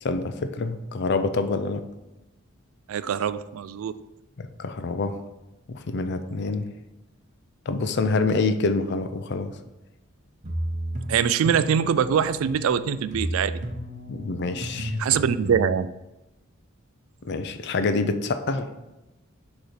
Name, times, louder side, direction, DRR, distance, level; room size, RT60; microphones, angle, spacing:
voice 1, 0.0-1.8 4.4-5.1 5.7-6.7 7.7-9.5 14.1-15.0 17.2-18.7, left 3 dB, 55° left, 9 dB, 0.5 m, -26 dB
voice 2, 2.9-3.9 11.1-13.6 15.0-15.9, right 7 dB, 75° right, 14 dB, 0.3 m, -23 dB
sound 1, 10.4-15.8, equal, 35° right, 0.8 m, -33 dB
6.4 x 3.1 x 4.9 m, 0.97 s
head